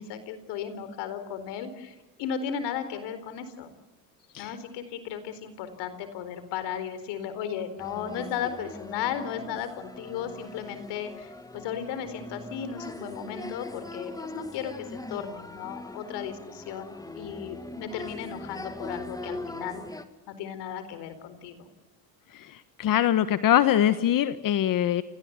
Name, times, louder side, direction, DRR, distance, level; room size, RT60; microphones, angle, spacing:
voice 1, 0.0-3.7 4.4-19.8 20.3-21.7, left 8 dB, 70° left, 11 dB, 4.3 m, -35 dB
sound 1, 7.8-20.0, left 2 dB, 10° left, 2.0 m, -41 dB
voice 2, 22.8-25.0, left 11 dB, 50° left, 12 dB, 1.3 m, -23 dB
28.0 x 19.0 x 8.1 m, 1.2 s
supercardioid pair, 105°, 42 cm